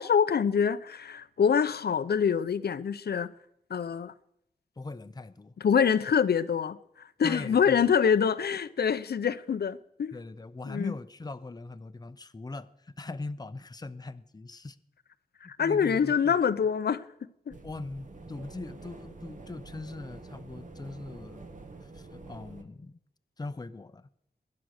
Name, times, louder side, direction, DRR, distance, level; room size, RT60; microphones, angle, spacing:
voice 1, 0.0-3.3 3.7-4.1 5.6-10.2 10.7-10.9 15.5-17.0 17.5-17.6, left 7 dB, 90° left, 0.7 m, -25 dB
voice 2, 4.8-5.6 7.2-7.8 8.5-8.6 10.1-14.8 15.4-16.4 17.6-21.4 21.8-23.0 23.4-24.1, left 3 dB, 25° left, 0.7 m, -41 dB
sound 1, 17.5-22.6, right 3 dB, 50° right, 1.6 m, -47 dB
20.0 x 11.0 x 6.5 m
wide cardioid pair, 120°, 16 cm